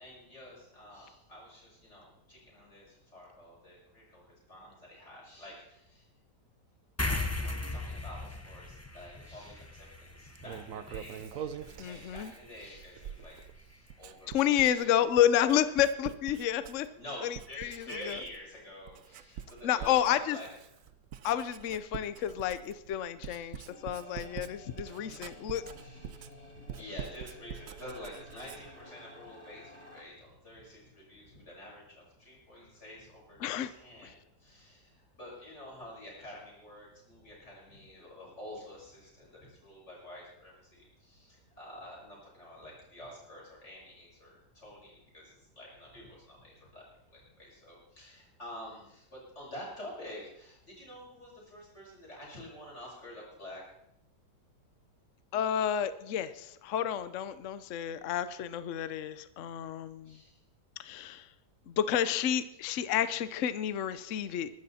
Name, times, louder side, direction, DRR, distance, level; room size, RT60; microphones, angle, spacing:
voice 1, 0.0-6.1 7.3-15.0 17.0-20.5 23.2-23.6 24.3-24.5 25.3-53.6 60.0-60.4, left 1 dB, 40° left, -4 dB, 6.8 m, -49 dB
sound 1, 7.0-13.8, left 2 dB, 10° left, 0.8 m, -39 dB
Writing, 10.4-17.1 17.3-18.5 18.9-28.8, right 9 dB, 60° right, 1.0 m, -45 dB
voice 2, 11.8-12.3 14.3-16.9 17.2-18.2 19.6-20.4 21.2-25.6 33.4-33.7 55.3-60.2 60.8-61.3 61.7-64.5, left 10 dB, 55° left, 13 dB, 0.9 m, -30 dB
sound 2, 23.6-30.0, left 1 dB, 40° right, 4.2 m, -52 dB
22.0 x 12.5 x 4.2 m, 0.80 s
omnidirectional pair, 1.8 m